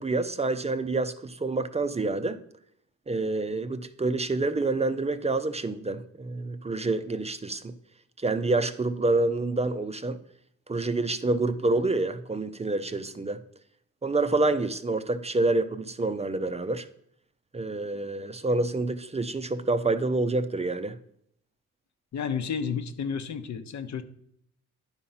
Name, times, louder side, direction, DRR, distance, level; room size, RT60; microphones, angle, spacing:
voice 1, 0.0-2.4 3.1-7.7 8.2-10.2 10.7-13.4 14.0-16.9 17.5-21.0, right 2 dB, 20° right, 0.5 m, -27 dB
voice 2, 22.1-24.0, left 6 dB, 60° left, 0.9 m, -31 dB
10.5 x 4.2 x 5.6 m
cardioid pair, 95°, 31 cm